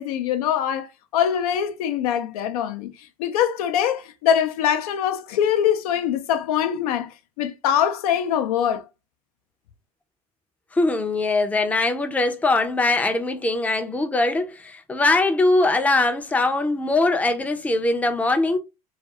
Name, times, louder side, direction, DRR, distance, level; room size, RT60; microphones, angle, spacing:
voice 1, 0.0-8.9, left 9 dB, 80° left, 0.4 m, -23 dB
voice 2, 10.7-18.6, left 2 dB, 10° left, 0.4 m, -21 dB
2.4 x 2.2 x 2.6 m
hypercardioid pair, 90°, 19 cm